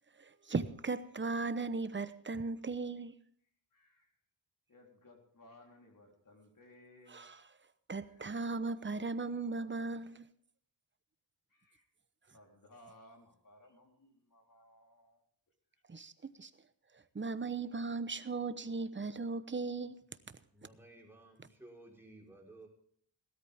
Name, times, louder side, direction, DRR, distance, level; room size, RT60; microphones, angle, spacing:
voice 1, 0.2-3.1 7.1-7.4 7.9-10.2 15.9-16.5 17.1-20.0, right 3 dB, 25° right, 1.0 m, -37 dB
voice 2, 3.7-4.1 4.7-7.2 8.0-8.4 9.2-9.4 11.5-11.8 12.3-15.2, left 1 dB, 45° left, 3.7 m, -61 dB
voice 3, 20.5-22.7, right 2 dB, 5° right, 5.1 m, -56 dB
17.0 x 13.5 x 3.6 m
cardioid pair, 85°, 44 cm